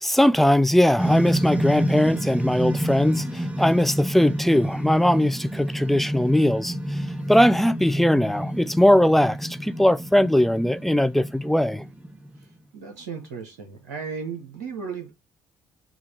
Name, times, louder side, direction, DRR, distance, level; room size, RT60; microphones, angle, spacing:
voice 1, 0.0-7.0 7.3-11.8, left 1 dB, ahead, 0.4 m, -20 dB
sound 1, 1.0-12.4, equal, 15° right, 0.8 m, -29 dB
voice 2, 12.7-15.1, right 6 dB, 80° right, 0.7 m, -35 dB
4.8 x 2.3 x 3.2 m
figure-of-eight pair, 45°, 9 cm